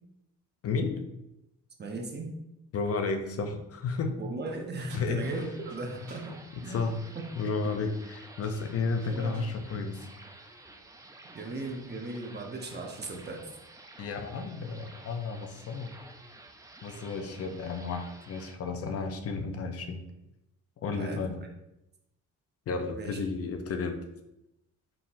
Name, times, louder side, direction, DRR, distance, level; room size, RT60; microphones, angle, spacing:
voice 1, 0.6-1.0 2.7-4.2 4.9-5.2 6.7-7.0 7.4-10.1 14.0-16.0 16.8-20.0 20.8-21.4 22.7-24.0, left 4 dB, 50° left, 6 dB, 0.6 m, -32 dB
voice 2, 1.8-2.3 4.2-6.3 6.6-6.9 7.1-7.2 9.0-9.6 11.3-13.4 20.9-21.2 22.9-23.2, right 2 dB, 35° right, 2 dB, 0.9 m, -37 dB
sound 1, 4.8-6.3 7.8-8.1 8.4-9.6, right 3 dB, 85° right, 1.2 m, -56 dB
sound 2, 5.2-18.6, right 2 dB, 10° right, 0.5 m, -52 dB
4.5 x 3.6 x 2.6 m, 0.87 s
cardioid pair, 90°, 30 cm